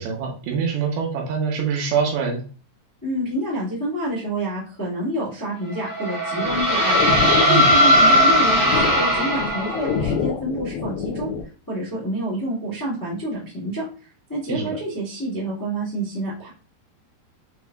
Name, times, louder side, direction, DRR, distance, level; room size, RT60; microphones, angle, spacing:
voice 1, 0.0-2.4 7.5-7.7 14.5-14.8, right 6 dB, 75° right, 1 dB, 2.6 m, -24 dB
voice 2, 3.0-11.3 11.7-13.8 14.3-16.5, right 1 dB, 25° left, -8 dB, 0.4 m, -28 dB
sound 1, 5.7-10.1, equal, 30° right, 1.0 m, -18 dB
sound 2, 6.4-11.4, left 6 dB, 85° left, 2.1 m, -27 dB
8.0 x 2.8 x 2.3 m, 0.37 s
omnidirectional pair, 4.9 m